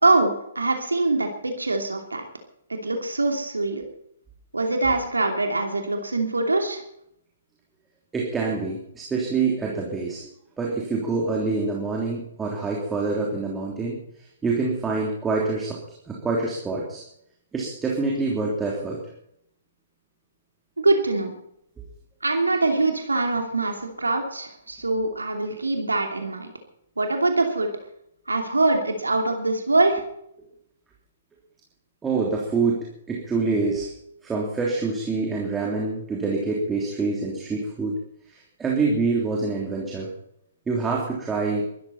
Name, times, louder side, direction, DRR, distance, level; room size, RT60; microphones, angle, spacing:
voice 1, 0.0-2.3 2.7-3.8 4.5-6.8 20.8-21.3 22.2-26.5 27.0-27.7 28.3-30.0, right 2 dB, 75° right, 3 dB, 2.8 m, -23 dB
voice 2, 8.1-10.3 10.6-14.0 14.4-15.8 16.1-17.0 17.5-19.0 32.0-33.9 34.2-38.0 38.3-40.1 40.7-41.7, right 3 dB, 10° right, -3 dB, 3.3 m, -26 dB
22.5 x 13.0 x 4.3 m, 0.75 s
figure-of-eight pair, 120°, 0 cm